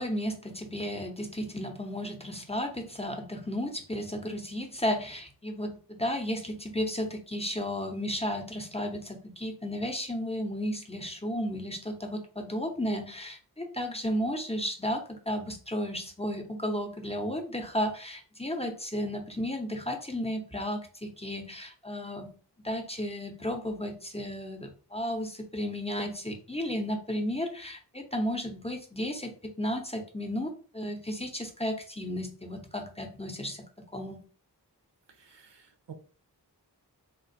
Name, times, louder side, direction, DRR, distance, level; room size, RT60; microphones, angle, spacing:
voice 1, 0.0-22.3 22.6-33.6 33.9-34.2, equal, 15° left, 3 dB, 0.6 m, -33 dB
voice 2, 35.1-35.9, right 7 dB, 85° right, 7 dB, 0.6 m, -50 dB
3.6 x 2.4 x 2.6 m, 0.38 s
wide cardioid pair, 45°, 42 cm